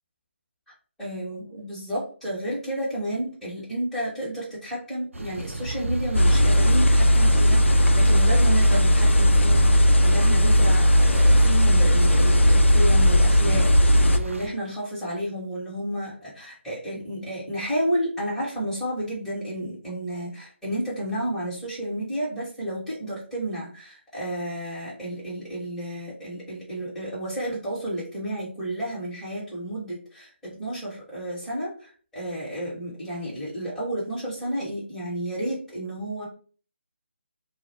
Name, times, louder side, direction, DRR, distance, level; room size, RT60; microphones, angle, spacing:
voice 1, 1.0-36.3, right 1 dB, 5° left, -9 dB, 1.0 m, -31 dB
sound 1, 5.1-14.5, right 1 dB, 90° right, 0.4 m, -32 dB
sound 2, 6.1-14.2, equal, 75° left, 0.4 m, -17 dB
2.2 x 2.0 x 3.2 m, 0.40 s
figure-of-eight pair, 150°, 7 cm